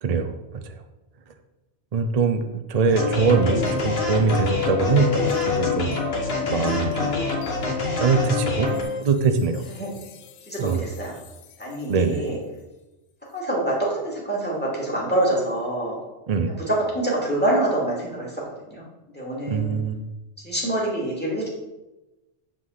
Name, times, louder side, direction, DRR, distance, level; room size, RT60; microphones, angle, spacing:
voice 1, 0.0-0.8 1.9-6.0 6.5-7.1 7.7-8.7 9.0-9.6 10.6-10.8 11.9-12.2 16.3-16.5 19.5-20.0, right 5 dB, 45° right, 7 dB, 0.5 m, -23 dB
sound 1, 2.9-8.8, left 2 dB, 55° left, 1.3 m, -28 dB
sound 2, 3.0-11.9, left 7 dB, 85° left, 1.0 m, -30 dB
voice 2, 10.5-11.1 11.6-12.4 13.3-16.0 16.7-18.3 18.7-18.8 19.1-19.8 20.4-21.5, right 1 dB, 10° left, -5 dB, 2.2 m, -25 dB
7.5 x 3.8 x 6.4 m, 1.0 s
omnidirectional pair, 1.3 m